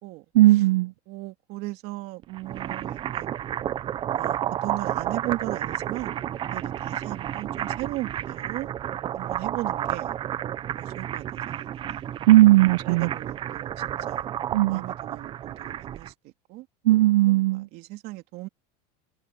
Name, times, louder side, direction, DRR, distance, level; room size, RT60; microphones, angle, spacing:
voice 1, 0.3-0.9 12.3-13.1 14.5-14.8 16.9-17.7, right 17 dB, 85° right, 0.7 m, -17 dB
voice 2, 1.1-3.4 4.1-6.3 6.5-8.7 9.1-10.1 10.7-12.0 12.9-13.7 14.1-14.2 14.7-16.1 16.5-17.4 17.7-18.5, right 19 dB, 50° right, 2.5 m, -37 dB
sound 1, 2.2-16.1, right 11 dB, 25° right, 0.6 m, -31 dB
supercardioid pair, 155°, 21 cm